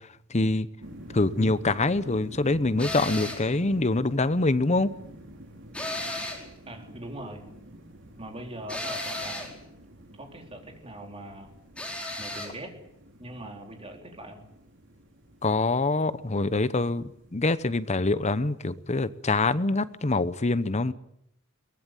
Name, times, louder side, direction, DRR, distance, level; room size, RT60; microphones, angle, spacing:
voice 1, 0.3-0.7 1.1-4.9 15.4-20.9, left 2 dB, 35° left, 0.9 m, -25 dB
sound 1, 0.8-19.7, equal, 60° right, 4.2 m, -49 dB
sound 2, 2.8-3.5 5.7-6.5 8.7-9.6 11.8-12.5, left 1 dB, 5° left, 4.6 m, -34 dB
voice 2, 6.7-7.4 8.2-9.6 10.2-11.5 12.2-12.8 13.2-14.4, right 1 dB, 30° right, 4.1 m, -41 dB
22.5 x 18.5 x 9.2 m
head